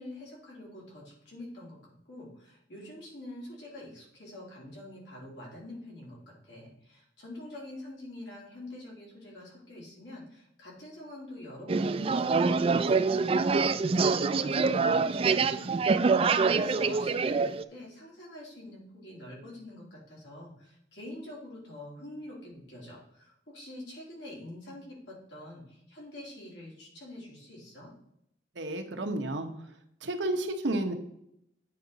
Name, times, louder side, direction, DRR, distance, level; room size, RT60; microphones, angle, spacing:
voice 1, 0.0-27.9, left 1 dB, 85° left, -4 dB, 3.2 m, -46 dB
sound 1, 11.7-17.6, right 4 dB, 30° right, 0.3 m, -25 dB
voice 2, 28.6-29.5 30.0-30.9, right 1 dB, 90° right, 4 dB, 1.0 m, -31 dB
8.9 x 4.8 x 4.0 m, 0.75 s
head